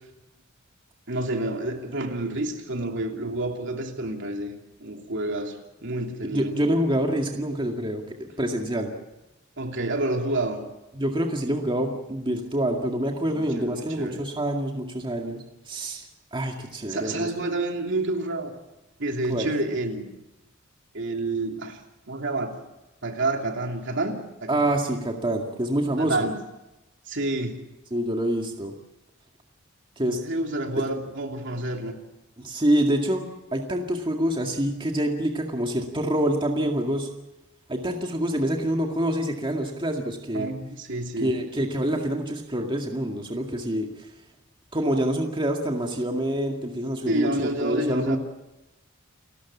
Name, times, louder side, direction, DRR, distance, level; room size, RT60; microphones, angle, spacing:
voice 1, 1.1-4.5 4.8-5.6 5.8-6.6 9.6-10.6 13.3-14.3 16.9-18.5 19.0-20.1 20.9-21.8 22.1-22.5 23.0-24.6 26.0-26.4 27.1-27.6 30.2-31.9 40.3-41.3 47.1-48.2, right 2 dB, 60° right, 3 dB, 2.9 m, -29 dB
voice 2, 6.3-8.9 10.9-17.3 19.3-19.5 24.5-26.3 27.9-28.7 30.0-30.2 32.4-37.1 37.7-40.5 41.2-44.1 44.7-48.2, right 1 dB, 25° right, 2 dB, 2.1 m, -26 dB
29.0 x 13.5 x 8.4 m, 0.98 s
head